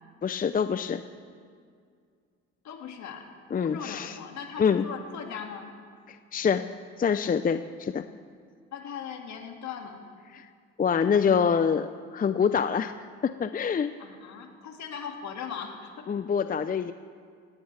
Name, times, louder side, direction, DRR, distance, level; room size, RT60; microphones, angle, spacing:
voice 1, 0.2-1.0 3.5-4.1 4.6-4.8 6.1-6.7 7.0-8.0 10.3-10.5 10.8-13.0 13.2-13.9 16.1-16.9, left 6 dB, 30° left, 11 dB, 0.6 m, -25 dB
voice 2, 2.6-3.2 3.6-5.7 8.7-10.0 14.0-16.1, left 7 dB, 65° left, 3 dB, 2.3 m, -39 dB
18.0 x 18.0 x 3.4 m, 2.1 s
hypercardioid pair, 60°, 30 cm